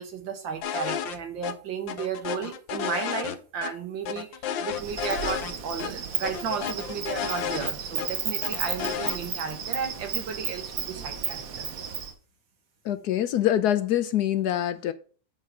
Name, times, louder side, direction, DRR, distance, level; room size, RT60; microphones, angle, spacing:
voice 1, 0.0-4.3 4.6-11.7, right 6 dB, 80° right, 2.3 m, -34 dB
sound 1, 0.6-1.2 1.4-1.5 1.9-3.7 4.1-5.5 5.8-5.9 6.2-8.1 8.4-9.2, left 8 dB, 85° left, 1.5 m, -32 dB
Insect, 4.7-12.1, right 7 dB, 55° right, 1.3 m, -33 dB
voice 2, 12.8-14.9, left 11 dB, 70° left, 1.0 m, -24 dB
8.3 x 4.5 x 4.6 m
omnidirectional pair, 2.0 m